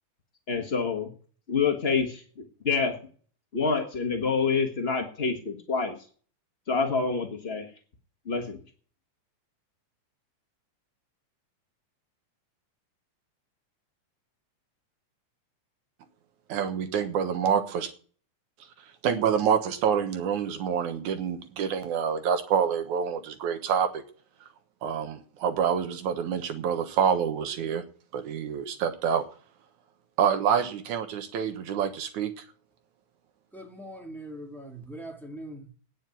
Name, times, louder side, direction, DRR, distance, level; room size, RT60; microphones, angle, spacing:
voice 1, 0.5-1.1 1.5-2.2 2.6-3.0 3.5-5.9 6.7-7.7 8.2-8.6, left 5 dB, 65° left, 0.6 m, -27 dB
voice 2, 16.5-17.9 19.0-24.0 24.8-27.8 28.1-29.3 30.2-32.3, right 7 dB, 70° right, 2.5 m, -27 dB
voice 3, 33.5-35.8, right 1 dB, ahead, 1.2 m, -41 dB
9.7 x 7.2 x 9.1 m
omnidirectional pair, 3.7 m